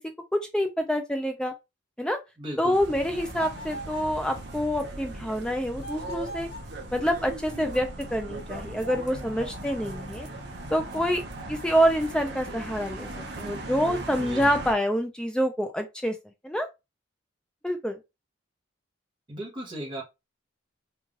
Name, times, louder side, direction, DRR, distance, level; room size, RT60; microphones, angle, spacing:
voice 1, 0.3-1.5 2.0-2.2 2.6-6.5 6.9-10.3 10.7-11.2 11.5-13.1 13.4-16.2 16.4-16.7 17.6-18.0, equal, 5° left, 0.4 m, -26 dB
voice 2, 2.4-2.8 14.2-14.5 19.3-20.0, right 1 dB, 25° right, 0.8 m, -36 dB
sound 1, 2.7-14.7, right 2 dB, 55° right, 0.6 m, -38 dB
sound 2, 3.3-4.2 5.8-6.8, right 1 dB, 50° left, 0.6 m, -41 dB
3.1 x 2.3 x 2.4 m
head